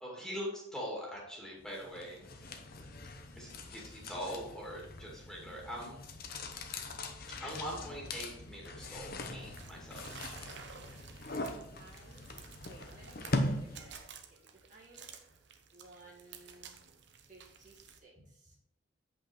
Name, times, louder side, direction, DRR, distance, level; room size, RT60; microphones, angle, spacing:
voice 1, 0.0-2.4 3.4-6.0 7.4-10.1, equal, 5° left, -4 dB, 2.2 m, -42 dB
sound 1, 1.7-14.1, left 2 dB, 50° left, 0.9 m, -41 dB
voice 2, 5.4-6.0 11.7-15.1 15.7-16.8 17.2-18.6, right 2 dB, 40° right, -4 dB, 1.9 m, -58 dB
sound 2, 9.5-18.0, right 6 dB, 65° right, 0.8 m, -53 dB
8.4 x 5.4 x 4.4 m, 0.81 s
head